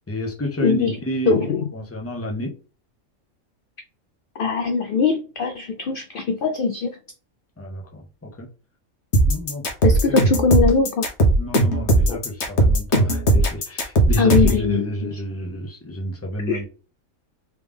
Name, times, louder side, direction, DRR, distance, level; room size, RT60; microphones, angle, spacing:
voice 1, 0.1-2.5 7.6-8.5 9.3-9.6 10.1-10.2 11.4-16.7, equal, 15° left, 0.7 m, -29 dB
voice 2, 0.6-1.0 1.3-1.6 4.4-7.0 9.8-11.0 12.1-12.2 14.2-15.1 16.5-16.6, left 5 dB, 80° left, 0.4 m, -21 dB
sound 1, 9.1-14.6, right 1 dB, 55° left, 1.2 m, -17 dB
3.5 x 3.2 x 3.5 m
omnidirectional pair, 1.5 m